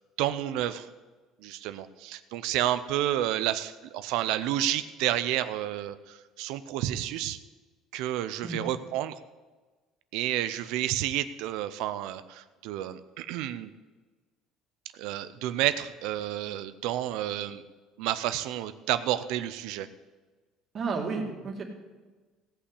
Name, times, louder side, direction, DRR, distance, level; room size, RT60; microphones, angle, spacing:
voice 1, 0.2-0.9 1.4-7.4 7.9-9.2 10.1-13.7 14.9-17.6 18.0-19.9, right 13 dB, 80° right, 12 dB, 0.6 m, -30 dB
voice 2, 20.7-21.6, right 4 dB, 35° right, 2 dB, 2.3 m, -32 dB
16.5 x 5.7 x 8.4 m, 1.3 s
cardioid pair, 145°, 0 cm